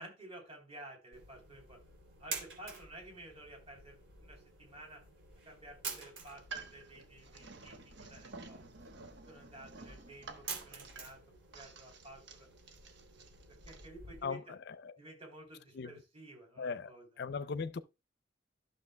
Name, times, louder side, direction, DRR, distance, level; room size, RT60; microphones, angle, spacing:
voice 1, 0.0-1.8 2.2-5.0 5.4-8.6 9.2-11.2 11.5-12.5 13.6-14.5 15.0-17.0, right 1 dB, 30° right, 3.3 m, -52 dB
sound 1, 1.1-14.2, right 4 dB, 85° right, 2.9 m, -49 dB
sound 2, 6.2-13.9, right 4 dB, 65° right, 1.1 m, -52 dB
voice 2, 14.2-14.9 15.7-15.9 16.6-16.9 17.2-17.8, left 5 dB, 60° left, 0.5 m, -38 dB
12.0 x 6.6 x 2.2 m
head